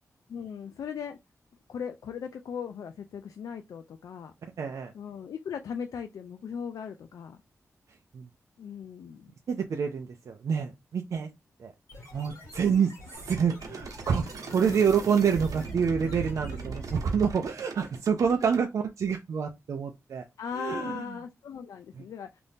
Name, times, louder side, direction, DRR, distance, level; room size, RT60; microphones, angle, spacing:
voice 1, 0.3-1.2 1.7-4.3 4.9-7.4 8.6-9.3 14.7-14.8 20.4-22.4, left 7 dB, 90° left, 0.3 m, -38 dB
voice 2, 4.6-4.9 8.1-8.3 9.5-11.3 11.6-11.7 12.1-20.2 20.5-21.2 21.9-22.0, right 6 dB, 65° right, 0.4 m, -27 dB
sound 1, 11.9-17.1, left 1 dB, 60° left, 1.4 m, -47 dB
sound 2, 13.1-18.6, right 5 dB, 80° right, 0.8 m, -39 dB
2.7 x 2.5 x 3.5 m
wide cardioid pair, 170°, 6 cm